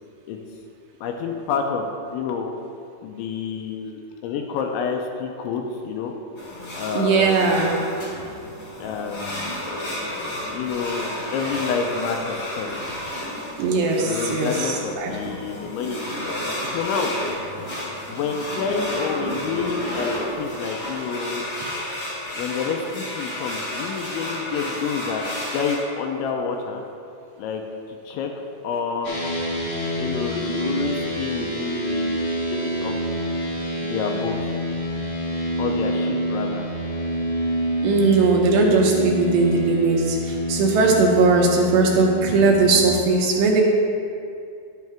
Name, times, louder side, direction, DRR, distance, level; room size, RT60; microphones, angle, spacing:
voice 1, 1.0-1.9 2.1-2.5 3.0-6.1 6.7-7.6 8.8-9.7 10.5-12.7 14.0-16.0 16.6-17.1 17.9-21.5 22.4-25.3 25.5-26.8 27.4-27.6 27.9-29.1 30.0-32.9 33.8-34.5 35.6-36.6, left 5 dB, 85° left, 3 dB, 2.9 m, -28 dB
sound 1, 6.4-25.8, left 1 dB, 50° left, 1.5 m, -32 dB
voice 2, 6.9-7.8 13.6-15.1 37.8-43.6, right 3 dB, 75° right, -2 dB, 2.9 m, -19 dB
sound 2, 29.0-42.9, right 1 dB, 65° left, 0.8 m, -27 dB
11.5 x 9.2 x 3.5 m, 2.5 s
omnidirectional pair, 5.6 m